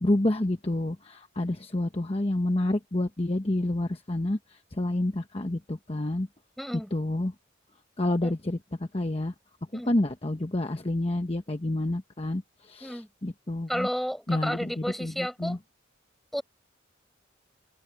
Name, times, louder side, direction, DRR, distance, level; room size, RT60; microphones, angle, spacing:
voice 1, 0.0-4.4 4.8-6.3 6.9-7.3 8.0-9.3 9.7-13.9 14.3-15.6, left 1 dB, 30° left, 1.0 m, -29 dB
voice 2, 6.6-6.9 8.2-8.4 9.7-9.9 12.8-13.1 13.7-15.6 16.3-16.4, equal, ahead, 5.2 m, -32 dB
head